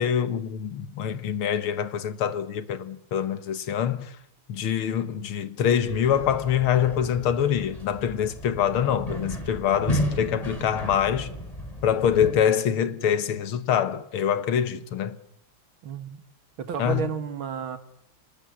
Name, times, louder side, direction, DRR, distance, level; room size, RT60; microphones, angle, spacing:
voice 1, 0.0-4.1 4.5-11.3 11.8-15.2 16.8-17.0, left 9 dB, 75° left, 2.1 m, -25 dB
sound 1, 5.8-12.3, equal, 15° left, 6.5 m, -33 dB
voice 2, 15.8-16.2 16.6-17.8, right 7 dB, 70° right, 2.4 m, -31 dB
26.0 x 20.0 x 9.7 m
omnidirectional pair, 2.4 m